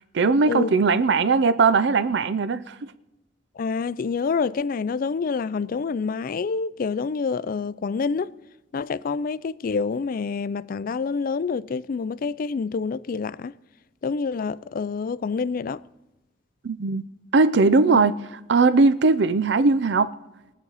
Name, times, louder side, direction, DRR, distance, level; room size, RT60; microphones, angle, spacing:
voice 1, 0.1-2.8 16.6-17.0 17.3-20.1, right 4 dB, 65° right, 0.5 m, -19 dB
voice 2, 3.6-8.3 8.7-13.5 14.0-15.8 17.9-18.0, left 5 dB, 50° left, 0.4 m, -27 dB
22.0 x 8.1 x 4.1 m
head